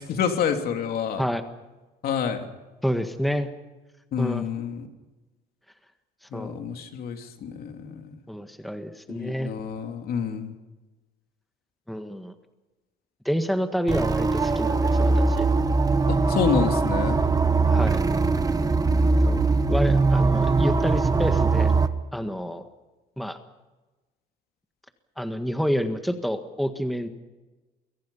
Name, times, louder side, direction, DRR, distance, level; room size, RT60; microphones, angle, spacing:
voice 1, 0.0-1.2 2.0-2.5 4.1-4.9 6.3-8.2 9.1-10.5 16.1-17.2, left 7 dB, 65° left, 5 dB, 3.1 m, -28 dB
voice 2, 2.8-3.5 4.2-4.5 6.2-6.6 8.3-9.5 11.9-12.3 13.2-15.5 17.7-18.0 19.2-21.7 22.1-22.6 23.2-23.4 25.2-27.1, equal, ahead, 7 dB, 1.6 m, -28 dB
sound 1, 13.9-21.9, right 3 dB, 20° right, 1.3 m, -21 dB
29.0 x 23.0 x 5.6 m, 1.1 s
cardioid pair, 110°, 17 cm